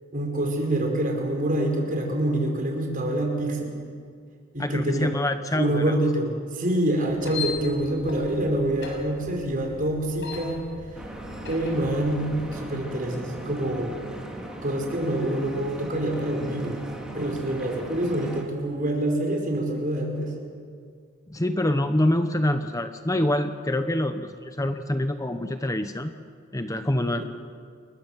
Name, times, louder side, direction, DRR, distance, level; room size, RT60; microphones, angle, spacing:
voice 1, 0.1-3.7 4.5-5.1 5.5-10.7 11.5-14.0 14.6-16.8 17.1-20.3 27.0-27.2, right 1 dB, 40° right, 2 dB, 5.3 m, -26 dB
voice 2, 4.6-6.0 21.3-26.1 26.5-27.2, left 1 dB, 15° left, 8 dB, 1.0 m, -26 dB
sound 1, 7.1-12.6, left 5 dB, 60° left, 6.6 m, -39 dB
Stream / Boat Water vehicle, 10.9-18.4, right 1 dB, 5° right, 3.4 m, -39 dB
29.5 x 23.0 x 7.5 m, 2.1 s
head